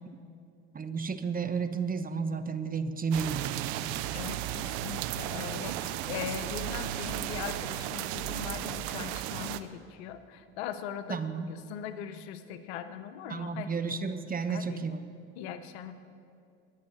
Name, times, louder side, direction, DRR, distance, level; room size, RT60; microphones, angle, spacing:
voice 1, 0.7-3.6 11.1-11.5 13.3-15.0, right 5 dB, 25° right, 10 dB, 1.0 m, -32 dB
sound 1, 3.1-9.6, right 13 dB, 80° right, 0.6 m, -34 dB
voice 2, 4.1-13.7 14.5-14.8 15.4-15.9, left 9 dB, 85° left, 11 dB, 0.9 m, -40 dB
19.5 x 7.4 x 6.5 m, 2.5 s
hypercardioid pair, 70°, 32 cm